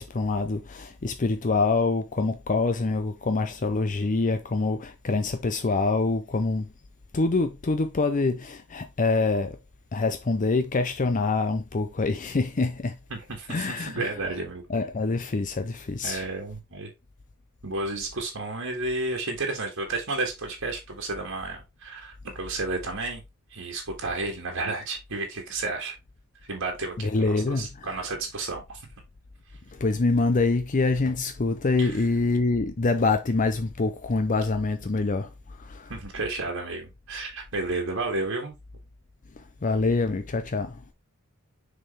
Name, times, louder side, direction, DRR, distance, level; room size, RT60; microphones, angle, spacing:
voice 1, 0.0-6.7 7.1-9.6 9.9-13.0 13.5-14.1 14.7-16.2 27.0-28.0 29.7-35.3 35.6-35.9 39.4-40.8, left 3 dB, 35° left, 0.5 m, -25 dB
voice 2, 13.1-14.6 16.0-16.9 17.6-23.2 23.5-26.0 26.5-28.8 31.8-32.0 35.9-38.5, right 3 dB, 65° right, 1.9 m, -32 dB
6.6 x 4.5 x 3.3 m
head